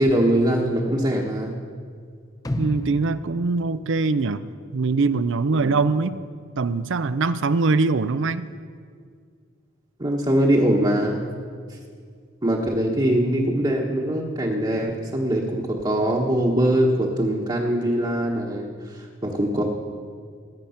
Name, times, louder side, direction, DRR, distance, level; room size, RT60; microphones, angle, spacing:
voice 1, 0.0-1.6 5.5-5.8 10.0-11.2 11.7-11.8 12.4-19.6, right 1 dB, 25° right, -2 dB, 1.2 m, -22 dB
sound 1, 2.4-4.6 5.0-5.1, left 1 dB, 20° left, 0.7 m, -33 dB
voice 2, 2.6-6.2 6.6-8.5, right 3 dB, 65° right, 15 dB, 0.5 m, -23 dB
20.5 x 8.9 x 5.7 m, 2.1 s
head